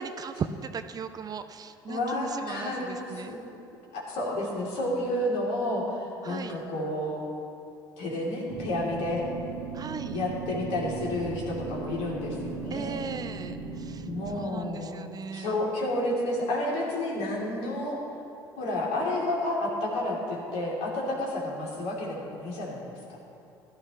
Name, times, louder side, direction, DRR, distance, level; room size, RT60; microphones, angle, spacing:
voice 1, 0.0-3.3 6.2-6.5 9.7-10.2 12.7-14.1 14.3-15.6, right 6 dB, 30° right, 10 dB, 0.5 m, -38 dB
voice 2, 1.9-3.4 3.9-7.2 8.0-9.3 10.1-13.2 14.0-15.0 15.3-18.0 18.6-22.8 23.1-23.2, left 1 dB, 60° left, -3 dB, 3.3 m, -30 dB
sound 1, 8.5-14.5, right 4 dB, 70° right, 1.3 m, -37 dB
16.0 x 13.0 x 3.2 m, 2.7 s
figure-of-eight pair, 60°, 12 cm